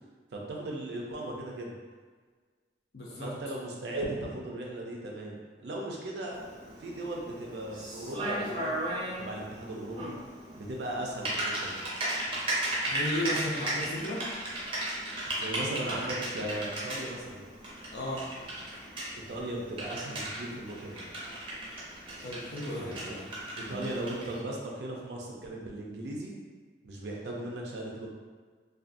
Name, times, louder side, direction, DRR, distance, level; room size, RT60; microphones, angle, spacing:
voice 1, 0.3-1.7 3.2-6.4 6.8-8.8 9.2-10.2 10.5-11.8 15.3-17.4 19.3-21.0 22.7-23.2 23.6-26.3 26.8-28.1, right 1 dB, 75° right, -2 dB, 0.5 m, -37 dB
voice 2, 2.9-3.3 12.9-14.2 17.9-18.2 22.2-23.3, left 1 dB, 70° left, -3 dB, 0.5 m, -34 dB
Typing, 6.3-24.4, right 1 dB, 30° right, 0.5 m, -36 dB
2.5 x 2.3 x 2.5 m, 1.5 s
head